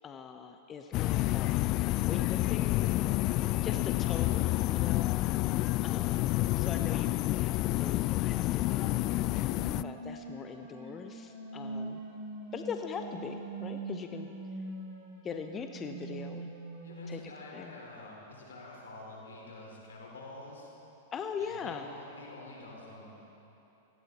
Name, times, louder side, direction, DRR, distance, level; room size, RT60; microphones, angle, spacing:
voice 1, 0.0-1.6 1.9-2.7 3.6-5.1 5.8-9.0 9.8-12.0 12.5-14.3 15.2-16.5 17.1-17.2 17.5-17.7 21.1-21.9, left 6 dB, 25° left, 6 dB, 0.7 m, -41 dB
sound 1, 0.9-9.8, left 17 dB, 45° left, 0.3 m, -29 dB
voice 2, 3.9-4.5 16.8-20.7 21.4-23.2, left 2 dB, 90° left, -3 dB, 4.3 m, -48 dB
sound 2, 8.7-17.2, right 2 dB, 65° right, 3.2 m, -43 dB
17.0 x 16.5 x 4.2 m, 3.0 s
hypercardioid pair, 115°, 0 cm